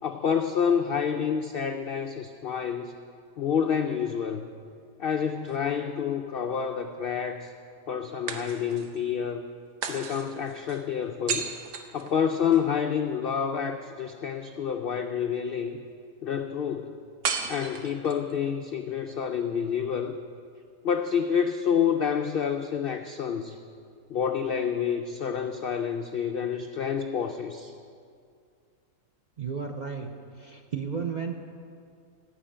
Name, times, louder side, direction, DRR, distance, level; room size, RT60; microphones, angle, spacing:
voice 1, 0.0-2.9 3.4-4.5 5.0-7.5 7.9-9.5 9.9-11.5 11.9-15.8 16.2-17.0 17.5-20.2 20.8-23.6 24.1-27.7, left 7 dB, 70° left, 6 dB, 0.5 m, -28 dB
sound 1, 5.2-6.2 8.3-9.0 9.8-12.7 17.2-18.3, right 6 dB, 85° right, 1.4 m, -35 dB
voice 2, 29.4-30.1 30.3-31.4, right 6 dB, 45° right, 3 dB, 0.5 m, -33 dB
16.0 x 5.6 x 8.8 m, 2.3 s
omnidirectional pair, 1.6 m